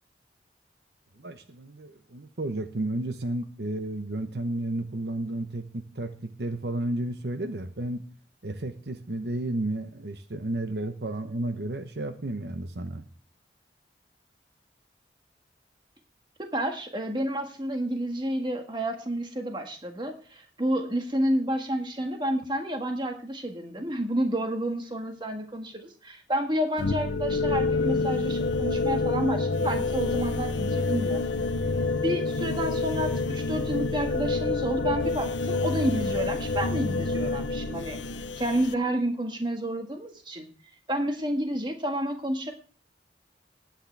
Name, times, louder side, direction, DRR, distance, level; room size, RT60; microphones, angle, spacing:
voice 1, 1.2-8.0 8.4-13.1, right 1 dB, 65° right, 9 dB, 0.9 m, -32 dB
voice 2, 16.4-31.2 32.0-38.0 38.4-40.5 40.9-42.5, right 1 dB, 25° right, 4 dB, 1.7 m, -30 dB
sound 1, 26.8-38.7, left 3 dB, 90° left, 0.7 m, -28 dB
19.0 x 8.9 x 3.4 m, 0.41 s
head